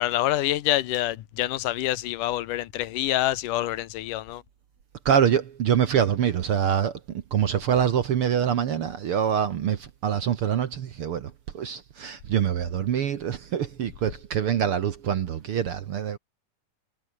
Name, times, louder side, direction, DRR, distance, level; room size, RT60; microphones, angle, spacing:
voice 1, 0.0-4.4, left 15 dB, 85° left, 2.5 m, -26 dB
voice 2, 5.0-16.2, right 8 dB, 60° right, 1.6 m, -25 dB
omnidirectional pair, 3.7 m